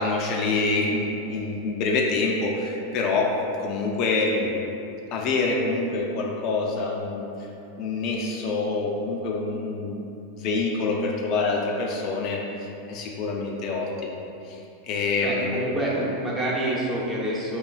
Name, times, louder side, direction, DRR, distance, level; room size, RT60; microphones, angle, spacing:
voice 1, 0.0-3.3 3.6-4.3 5.1-7.3 7.8-10.0 10.3-14.2 14.5-14.6 14.9-15.6, left 3 dB, 45° left, -1 dB, 0.3 m, -26 dB
voice 2, 15.2-17.6, right 1 dB, 15° right, -6 dB, 0.7 m, -27 dB
3.7 x 2.4 x 2.4 m, 2.8 s
supercardioid pair, 125°, 0 cm